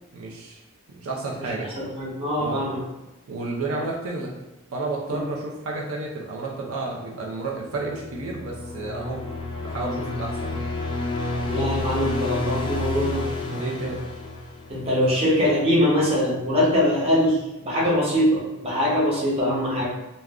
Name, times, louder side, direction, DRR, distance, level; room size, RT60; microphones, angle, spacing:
voice 1, 0.1-0.6 0.9-1.8 2.4-2.7 3.3-4.4 4.7-9.2 9.6-10.6 13.5-14.0, right 2 dB, 80° right, -2 dB, 0.5 m, -31 dB
voice 2, 1.7-2.8 5.1-5.2 11.4-13.3 14.7-19.9, equal, 30° right, -5 dB, 0.7 m, -22 dB
sound 1, 7.7-15.1, left 2 dB, 20° left, 0.3 m, -30 dB
2.4 x 2.1 x 3.4 m, 0.99 s
head